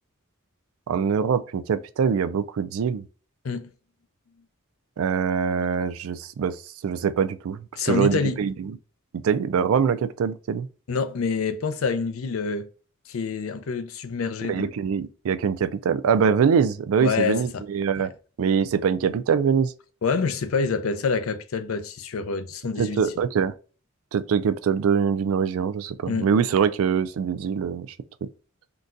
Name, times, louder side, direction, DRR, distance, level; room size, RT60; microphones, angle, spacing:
voice 1, 0.9-3.0 5.0-6.5 6.8-7.6 7.9-8.8 9.1-10.7 14.4-18.1 18.4-19.7 22.8-23.5 24.1-27.9, right 6 dB, 85° right, 0.4 m, -23 dB
voice 2, 7.8-8.4 10.9-12.7 13.1-14.7 17.0-17.6 20.0-23.0 26.1-26.3, left 5 dB, 85° left, 0.5 m, -27 dB
3.9 x 2.3 x 2.5 m
head